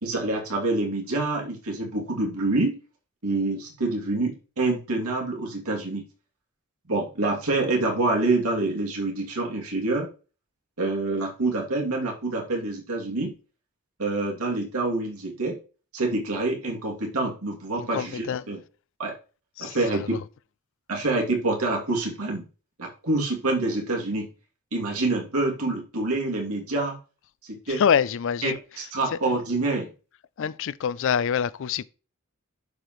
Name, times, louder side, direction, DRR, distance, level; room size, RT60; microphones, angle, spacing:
voice 1, 0.0-2.8 3.2-6.0 6.9-10.1 10.8-13.3 14.0-15.6 15.9-18.6 19.0-19.2 19.6-20.2 20.9-22.4 22.8-24.3 24.7-27.0 27.5-27.8 28.4-29.9, right 2 dB, 85° right, 2.6 m, -26 dB
voice 2, 17.8-18.4 19.6-19.8 27.7-28.6 29.1-29.2 30.4-31.8, left 7 dB, 60° left, 0.4 m, -25 dB
11.0 x 5.0 x 3.1 m
head